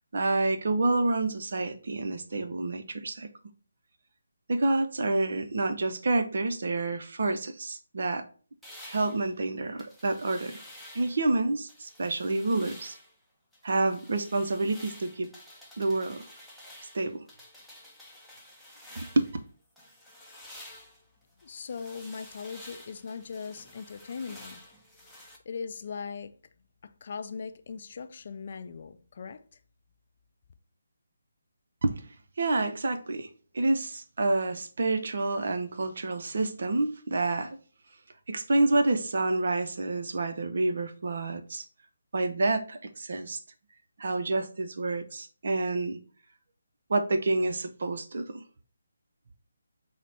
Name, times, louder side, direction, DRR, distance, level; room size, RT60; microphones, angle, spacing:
voice 1, 0.1-3.3 4.5-8.2 8.8-10.6 10.9-13.0 13.6-15.3 15.8-16.2 16.9-17.2 19.0-19.3 31.8-32.0 32.4-33.3 33.5-37.6 38.3-41.6 42.1-43.4 44.0-46.0 46.9-48.3, right 2 dB, 60° right, 0.6 m, -28 dB
sound 1, 8.6-11.3 11.7-13.1 13.5-19.4 19.8-25.4, left 1 dB, ahead, 0.6 m, -50 dB
voice 2, 21.4-24.6 25.2-26.4 26.8-29.4, left 5 dB, 50° left, 0.3 m, -39 dB
4.0 x 2.1 x 4.5 m
figure-of-eight pair, 150°, 0 cm